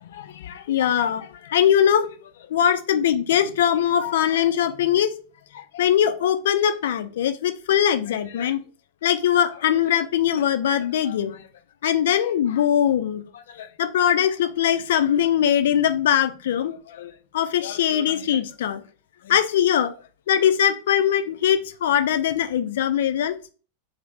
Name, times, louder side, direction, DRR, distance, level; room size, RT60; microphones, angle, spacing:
voice 1, 0.0-2.1 2.5-5.1 5.5-8.6 9.0-11.4 11.8-18.8 19.2-19.9 20.3-23.3, left 9 dB, 60° left, 0.4 m, -21 dB
2.6 x 2.6 x 3.4 m
figure-of-eight pair, 90°, 0 cm